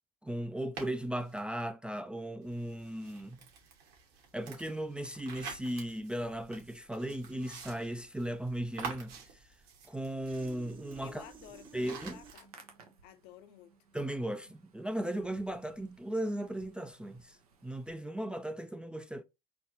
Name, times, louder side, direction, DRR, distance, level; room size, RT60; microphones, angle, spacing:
voice 1, 0.2-3.4 4.3-9.5 9.9-11.2 11.7-12.2 13.9-17.4 17.6-19.2, right 1 dB, 5° right, 0.4 m, -37 dB
sound 1, 0.8-1.4 2.4-12.4, right 6 dB, 55° right, 1.8 m, -48 dB
sound 2, 5.4-12.3, right 5 dB, 25° right, 0.8 m, -56 dB
voice 2, 11.0-12.7 13.0-13.7, left 11 dB, 55° left, 0.7 m, -53 dB
Hands, 12.2-17.9, right 5 dB, 80° right, 1.1 m, -61 dB
4.1 x 3.0 x 2.8 m
hypercardioid pair, 75°, 19 cm